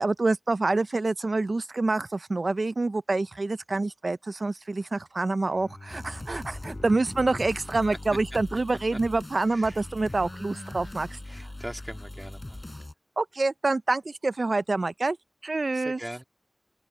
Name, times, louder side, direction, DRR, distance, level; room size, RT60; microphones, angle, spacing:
voice 1, 0.0-11.2 13.2-15.2 15.4-16.0, right 3 dB, 85° right, 0.4 m, -27 dB
Bowed string instrument, 5.4-9.9, left 3 dB, 80° left, 6.7 m, -47 dB
sound 1, 5.9-12.9, left 1 dB, 40° left, 4.6 m, -41 dB
voice 2, 9.5-9.8 10.1-10.2 11.2-12.6 15.7-16.2, equal, 15° right, 2.6 m, -41 dB
wide cardioid pair, 45°, 0 cm